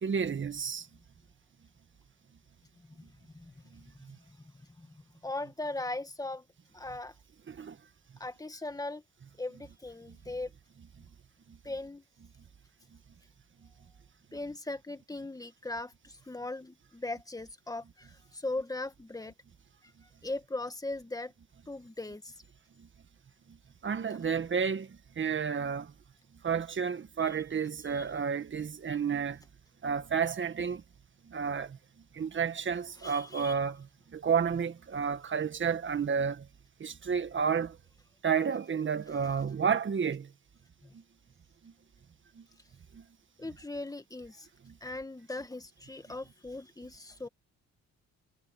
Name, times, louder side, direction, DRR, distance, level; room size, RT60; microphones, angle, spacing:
voice 1, 0.0-0.9 3.7-4.2 7.5-7.8 10.1-10.2 11.5-11.6 22.8-22.9 23.5-23.6 23.8-25.9 26.4-29.4 29.8-30.8 31.3-31.8 32.1-36.5 36.8-37.8 38.2-40.3 40.9-41.0 41.6-41.7 42.4-42.5 42.9-43.0 44.6-44.8, right 6 dB, 40° right, 1.8 m, -31 dB
voice 2, 5.2-6.4 6.7-7.1 8.2-9.0 9.4-10.5 11.6-12.0 14.3-19.3 20.2-21.3 21.7-22.3 27.9-28.1 33.0-33.5 40.8-40.9 43.4-44.5 44.8-47.3, left 2 dB, 10° left, 1.9 m, -39 dB
cardioid pair, 90°, 30 cm